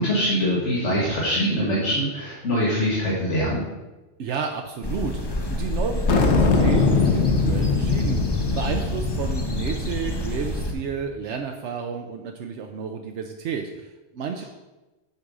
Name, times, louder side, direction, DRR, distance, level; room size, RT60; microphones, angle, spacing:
voice 1, 0.0-3.6, equal, 90° left, -5 dB, 1.9 m, -23 dB
voice 2, 4.2-14.4, right 6 dB, 80° right, 4 dB, 1.0 m, -31 dB
sound 1, 4.8-10.7, left 1 dB, 25° left, 0.7 m, -29 dB
sound 2, 6.1-10.8, left 4 dB, 75° left, 1.2 m, -22 dB
8.0 x 5.3 x 4.9 m, 1.1 s
omnidirectional pair, 1.2 m